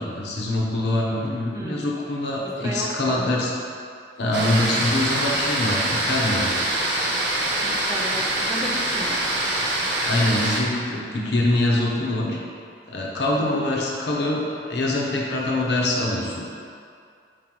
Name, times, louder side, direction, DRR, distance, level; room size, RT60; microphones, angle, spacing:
voice 1, 0.0-3.5 4.2-6.5 10.0-12.4 12.9-16.4, left 1 dB, 75° left, -3 dB, 0.7 m, -24 dB
voice 2, 1.5-1.9 2.4-3.3 7.6-9.2 13.4-13.7, right 1 dB, 15° right, -2 dB, 0.4 m, -34 dB
sound 1, 4.3-10.6, right 1 dB, 90° right, 0.7 m, -24 dB
4.7 x 3.7 x 3.0 m, 2.4 s
head